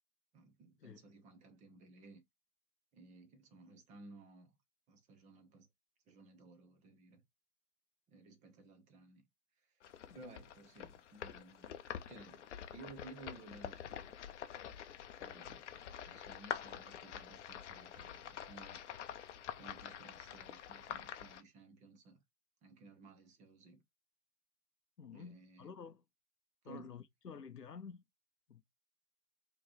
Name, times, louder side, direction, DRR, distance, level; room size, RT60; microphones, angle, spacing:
voice 1, 0.3-2.2 2.9-4.6 4.9-5.7 6.1-7.2 8.1-9.2 9.6-9.8 10.1-11.8 12.1-12.5 12.7-14.2 15.2-18.8 19.6-22.2 22.6-23.8 25.1-25.8 26.6-27.0, right 3 dB, 15° right, 0.8 m, -57 dB
sound 1, 9.8-21.4, left 9 dB, 50° left, 0.7 m, -47 dB
voice 2, 25.0-26.0 26.6-28.0 28.5-28.6, left 6 dB, 90° left, 0.7 m, -51 dB
5.0 x 3.1 x 3.0 m
figure-of-eight pair, 110°, 47 cm